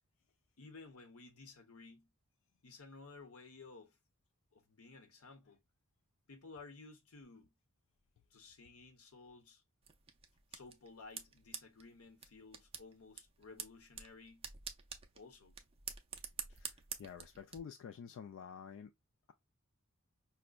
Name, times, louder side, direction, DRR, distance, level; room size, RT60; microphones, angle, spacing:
voice 1, 0.6-2.1 2.6-4.0 4.5-5.6 6.3-7.5 8.3-9.6 10.5-14.5 15.1-15.6, left 3 dB, 85° left, 0.9 m, -55 dB
sound 1, 9.8-17.6, right 7 dB, 25° right, 0.4 m, -49 dB
voice 2, 16.5-18.9, left 7 dB, 60° left, 0.3 m, -50 dB
5.1 x 2.1 x 2.2 m
head